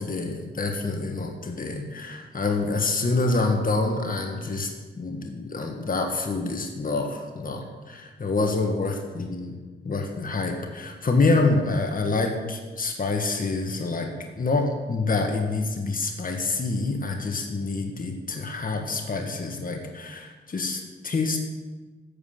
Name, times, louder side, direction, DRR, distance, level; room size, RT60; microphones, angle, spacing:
voice 1, 0.0-9.6 9.8-14.1 14.4-21.4, left 3 dB, 40° left, 3 dB, 1.9 m, -27 dB
12.0 x 7.7 x 6.8 m, 1.3 s
cardioid pair, 60°, 21 cm